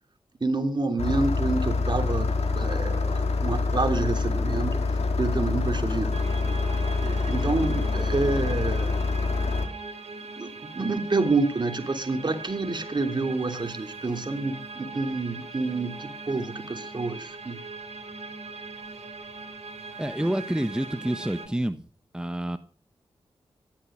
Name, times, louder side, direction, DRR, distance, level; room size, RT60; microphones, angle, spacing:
voice 1, 0.4-2.3 2.5-4.8 5.2-6.2 7.0-9.0 10.4-17.6, right 3 dB, 45° right, 6 dB, 3.2 m, -28 dB
Engine starting, 1.0-9.7, left 3 dB, 80° left, 3.3 m, -26 dB
sound 1, 6.1-21.5, right 3 dB, 85° right, 3.2 m, -40 dB
voice 2, 20.0-21.8 22.1-22.6, right 1 dB, 10° right, 9 dB, 1.2 m, -28 dB
15.5 x 12.0 x 6.3 m, 0.39 s
cardioid pair, 55°, 11 cm